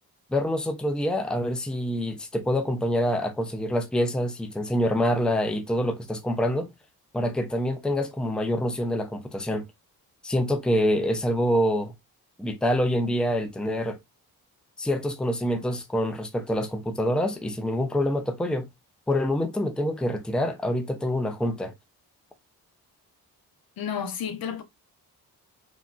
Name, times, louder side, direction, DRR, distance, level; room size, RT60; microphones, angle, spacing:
voice 1, 0.3-6.7 7.1-9.6 10.2-11.9 12.4-14.0 14.8-18.7 19.1-21.7, equal, ahead, 0.6 m, -26 dB
voice 2, 23.8-24.6, left 8 dB, 70° left, 0.8 m, -31 dB
3.9 x 2.4 x 2.3 m
cardioid pair, 85°, 38 cm